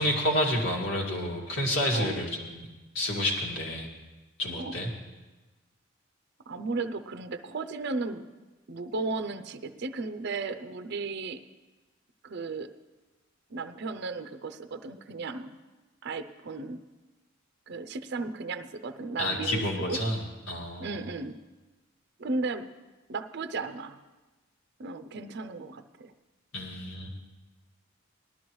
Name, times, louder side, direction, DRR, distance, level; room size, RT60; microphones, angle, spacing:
voice 1, 0.0-2.6 2.9-3.9 4.4-4.9 19.2-20.2 20.5-21.0 26.5-27.1, left 1 dB, 70° left, -1 dB, 2.2 m, -29 dB
voice 2, 1.9-2.3 4.6-4.8 6.5-8.2 8.7-11.5 12.2-12.7 13.5-15.6 16.0-16.8 17.7-20.1 20.8-21.4 22.2-22.7 23.1-24.0 24.8-26.1, right 3 dB, 55° right, 9 dB, 0.5 m, -35 dB
19.0 x 12.5 x 3.1 m, 1.2 s
head